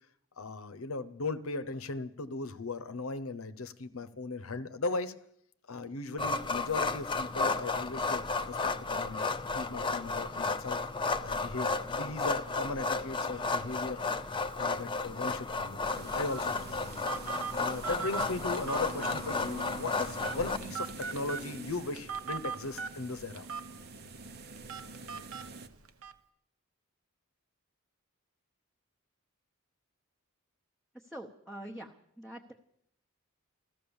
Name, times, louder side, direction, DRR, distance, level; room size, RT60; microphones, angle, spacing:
voice 1, 0.4-5.2 5.7-9.2 9.5-10.8 11.2-14.0 14.6-16.8 17.6-23.5, left 3 dB, 85° left, 14 dB, 0.9 m, -37 dB
sound 1, 6.2-20.6, left 3 dB, 25° left, 0.6 m, -33 dB
sound 2, 15.9-25.7, right 3 dB, 50° right, 1.0 m, -46 dB
Telephone, 16.3-26.1, right 5 dB, 80° right, 1.1 m, -42 dB
voice 2, 31.1-32.5, right 1 dB, ahead, -1 dB, 0.9 m, -45 dB
14.5 x 14.0 x 7.1 m, 0.71 s
head